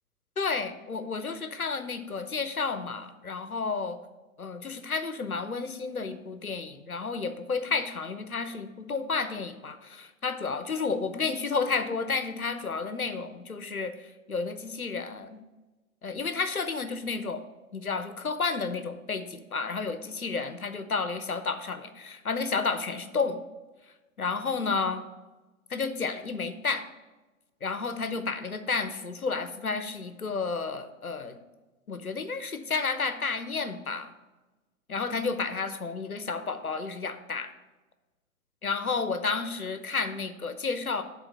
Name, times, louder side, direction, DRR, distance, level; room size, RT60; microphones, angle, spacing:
voice 1, 0.4-4.0 4.4-15.4 16.0-17.5 17.7-23.4 24.2-25.0 25.7-26.8 27.6-31.4 31.9-34.1 34.9-37.5 38.6-41.0, left 4 dB, 85° left, 10 dB, 0.9 m, -31 dB
11.5 x 3.9 x 5.5 m, 1.2 s
figure-of-eight pair, 115°, 42 cm